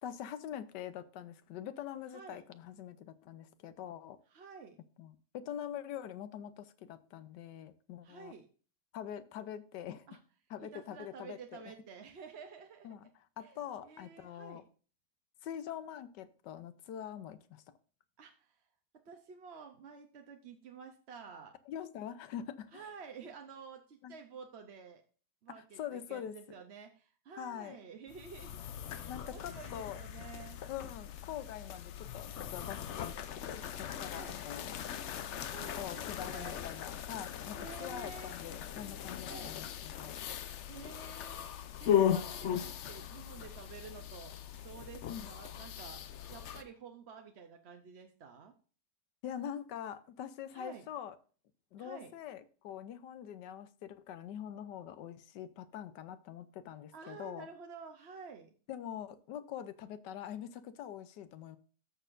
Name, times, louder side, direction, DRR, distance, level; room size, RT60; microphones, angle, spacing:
voice 1, 0.0-4.2 5.0-8.3 8.9-10.1 10.5-11.7 12.8-13.0 13.4-14.6 15.4-17.6 21.7-22.8 24.0-24.1 25.8-26.3 27.4-27.8 29.1-30.0 30.7-34.8 35.7-40.1 45.1-45.2 49.2-51.2 51.7-57.5 58.7-61.6, left 10 dB, 85° left, 13 dB, 1.4 m, -44 dB
voice 2, 2.1-2.4 4.3-4.8 8.0-8.5 10.1-10.2 10.6-13.0 13.4-13.6 13.8-14.6 18.2-18.6 19.1-21.5 22.7-25.0 25.4-28.6 28.9-30.6 34.0-34.4 34.8-35.2 35.5-36.6 37.6-38.3 39.3-39.6 40.0-40.4 40.7-41.5 41.8-46.0 46.3-48.5 50.5-50.9 51.8-52.1 56.9-58.5, right 5 dB, 50° right, 5 dB, 0.9 m, -51 dB
sound 1, 28.1-46.6, left 9 dB, 65° left, 0.7 m, -38 dB
13.0 x 6.3 x 2.5 m, 0.39 s
omnidirectional pair, 1.8 m